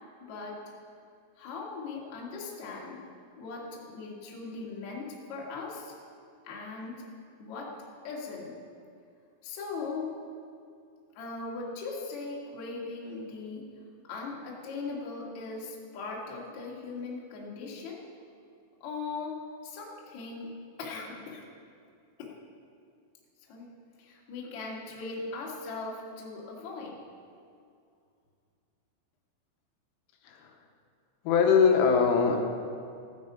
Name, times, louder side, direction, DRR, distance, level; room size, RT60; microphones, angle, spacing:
voice 1, 0.2-0.6 1.4-3.0 3.4-5.9 6.4-7.0 7.4-7.7 8.0-8.6 9.4-10.1 11.1-13.7 14.1-18.0 18.8-19.3 19.6-20.5 20.8-21.5 22.2-22.3 23.5-23.7 24.0-27.0, left 4 dB, 50° left, -3 dB, 2.3 m, -39 dB
voice 2, 30.2-30.6 31.3-32.5, left 6 dB, 85° left, 3 dB, 3.5 m, -22 dB
15.5 x 9.7 x 5.1 m, 2.3 s
omnidirectional pair, 5.9 m